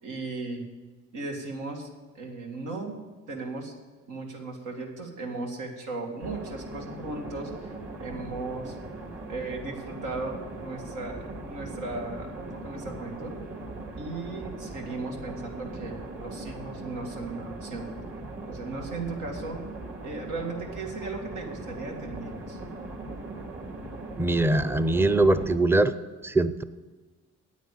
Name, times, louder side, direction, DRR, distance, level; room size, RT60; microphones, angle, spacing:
voice 1, 0.0-0.6 1.1-1.9 2.1-3.7 4.1-7.7 8.0-8.7 9.3-13.4 13.9-17.9 18.5-19.6 20.0-22.6, right 3 dB, 85° right, 1 dB, 2.2 m, -36 dB
sound 1, 6.2-25.6, right 2 dB, 45° right, 2.3 m, -40 dB
voice 2, 24.2-25.9 26.2-26.6, right 2 dB, 10° right, 13 dB, 0.5 m, -22 dB
9.3 x 8.4 x 8.4 m, 1.3 s
cardioid pair, 90°, 30 cm